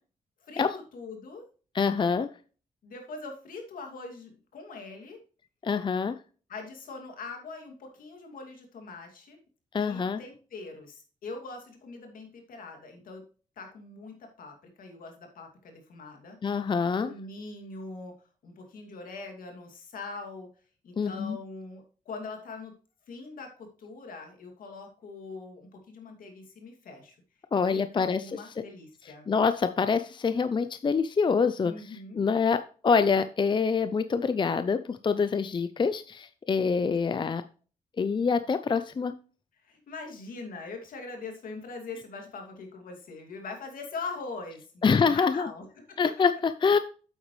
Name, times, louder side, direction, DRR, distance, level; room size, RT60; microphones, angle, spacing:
voice 1, 0.9-1.4 2.8-5.2 6.5-9.4 9.8-13.2 13.6-16.4 17.0-18.1 18.4-20.5 20.8-22.7 23.1-23.5 23.8-27.2 27.7-29.3 31.6-32.2 37.1-37.2 39.6-46.0, left 3 dB, 80° left, 3 dB, 2.6 m, -42 dB
voice 2, 1.7-2.3 5.6-6.2 9.7-10.2 16.4-17.1 21.0-21.4 27.5-28.4 29.3-37.4 38.0-39.1 44.8-45.5 46.0-46.8, left 5 dB, 35° left, 11 dB, 0.5 m, -26 dB
8.5 x 8.1 x 3.2 m, 0.38 s
cardioid pair, 80°, 14 cm